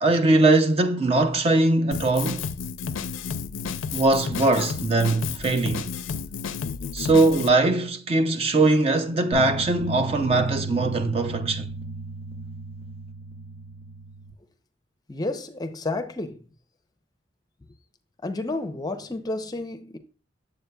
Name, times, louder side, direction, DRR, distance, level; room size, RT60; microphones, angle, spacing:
voice 1, 0.0-2.5 3.9-5.9 6.9-11.7, right 2 dB, 30° right, 0.4 m, -21 dB
Drum kit, 1.9-7.5, left 6 dB, 80° left, 0.4 m, -32 dB
sound 1, 9.3-14.3, right 2 dB, 70° right, 1.4 m, -35 dB
voice 2, 15.1-16.4 18.2-20.0, left 2 dB, 20° left, 0.5 m, -31 dB
7.8 x 7.4 x 2.2 m
head